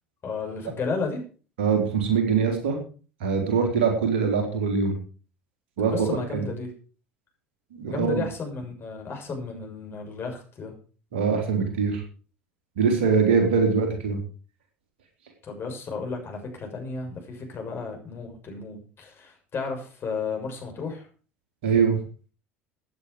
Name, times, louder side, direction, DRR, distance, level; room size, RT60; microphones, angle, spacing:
voice 1, 0.2-1.2 5.8-6.7 7.9-10.7 15.4-21.1, left 4 dB, 40° left, 3 dB, 6.3 m, -33 dB
voice 2, 1.6-2.8 3.2-5.0 5.8-6.4 7.7-8.2 11.1-12.0 12.8-14.2 21.6-22.0, right 5 dB, 70° right, 4 dB, 3.9 m, -23 dB
16.0 x 9.6 x 5.0 m, 0.38 s
figure-of-eight pair, 65°, 6 cm